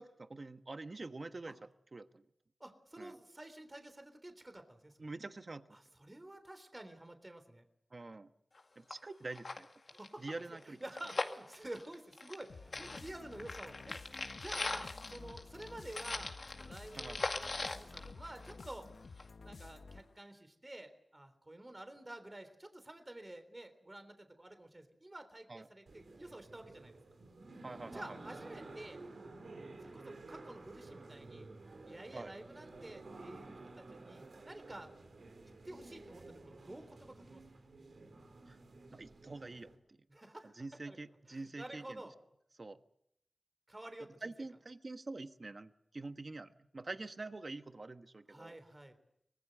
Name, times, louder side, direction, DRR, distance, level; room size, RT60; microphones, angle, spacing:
voice 1, 0.0-1.6 1.9-2.2 3.0-3.2 5.0-5.6 7.9-8.3 8.7-9.7 10.2-10.8 16.9-17.2 25.5-25.7 27.6-28.2 32.1-32.3 38.5-38.6 38.9-40.0 40.4-42.0 42.6-42.8 44.2-48.6, right 3 dB, 50° right, 9 dB, 1.3 m, -46 dB
voice 2, 2.6-5.1 5.7-7.6 9.9-14.0 14.3-18.9 19.4-27.0 27.9-29.0 29.8-31.5 31.9-34.9 35.4-37.4 40.1-40.6 40.8-41.0 41.3-42.1 43.7-44.3 48.3-49.0, right 1 dB, 30° right, 9 dB, 3.6 m, -50 dB
sound 1, 8.6-8.7 8.9-9.0 9.3-12.5 12.7-18.8 19.2-19.3, left 3 dB, 60° left, 2.2 m, -41 dB
sound 2, 12.5-20.2, left 4 dB, 80° left, 1.5 m, -52 dB
sound 3, 25.9-39.8, right 2 dB, 80° right, 3.8 m, -52 dB
24.5 x 20.0 x 8.0 m, 0.75 s
cardioid pair, 50°, 0 cm